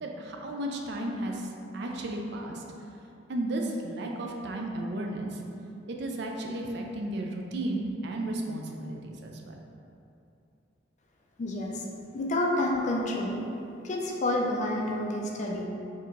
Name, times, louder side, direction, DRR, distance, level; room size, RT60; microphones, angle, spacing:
voice 1, 0.0-2.6 3.3-5.4 5.9-9.5, right 1 dB, 60° right, 1 dB, 0.4 m, -34 dB
voice 2, 11.4-11.8 12.1-13.5 13.8-15.7, left 1 dB, 40° left, 0 dB, 0.4 m, -29 dB
4.3 x 2.8 x 2.5 m, 2.7 s
head